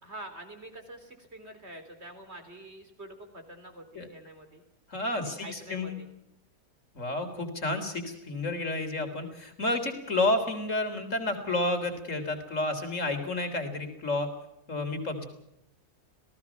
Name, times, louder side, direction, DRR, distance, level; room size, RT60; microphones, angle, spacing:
voice 1, 0.0-4.6 5.1-6.1, right 1 dB, 40° right, 6 dB, 3.9 m, -46 dB
voice 2, 4.9-6.0 6.9-14.3 14.7-15.3, left 2 dB, 50° left, 6 dB, 3.9 m, -30 dB
28.0 x 18.0 x 5.9 m, 0.82 s
omnidirectional pair, 1.7 m